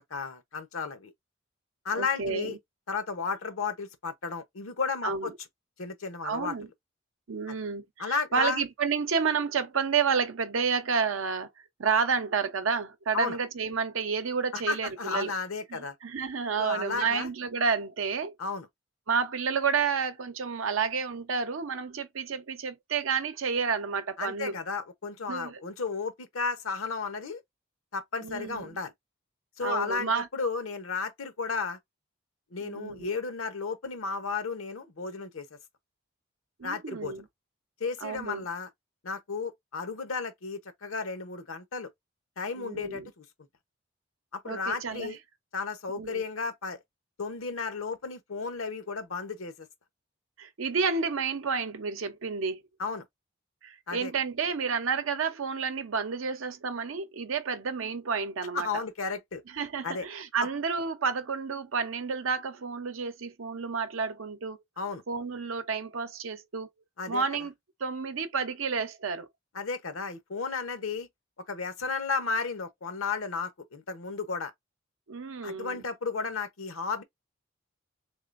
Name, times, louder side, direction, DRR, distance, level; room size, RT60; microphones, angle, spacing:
voice 1, 0.1-1.1 1.8-2.6 2.9-5.3 5.8-6.5 7.5-7.6 8.0-8.6 13.1-13.4 14.5-15.9 16.6-17.3 18.4-18.7 24.2-27.4 27.9-28.9 29.6-31.8 32.5-35.5 36.6-37.1 37.8-38.7 39.0-41.9 42.4-43.2 44.3-45.2 45.5-46.8 47.2-49.7 52.8-53.1 53.9-54.1 58.5-59.4 59.8-60.1 64.8-65.0 67.0-67.2 69.5-71.1 71.5-74.5 75.4-77.0, left 4 dB, 90° left, 0.9 m, -33 dB
voice 2, 2.0-2.6 5.0-5.3 6.2-6.7 7.3-11.5 11.8-15.3 16.0-18.3 19.1-24.6 25.3-25.6 28.2-28.8 29.6-30.3 32.6-33.1 36.6-37.2 38.0-38.5 42.6-43.1 44.4-45.1 45.9-46.2 50.4-52.6 53.6-58.7 59.5-64.6 65.1-66.7 67.1-67.5 67.8-69.3 75.1-75.8, right 5 dB, 80° right, 0.7 m, -30 dB
3.7 x 3.2 x 2.5 m
head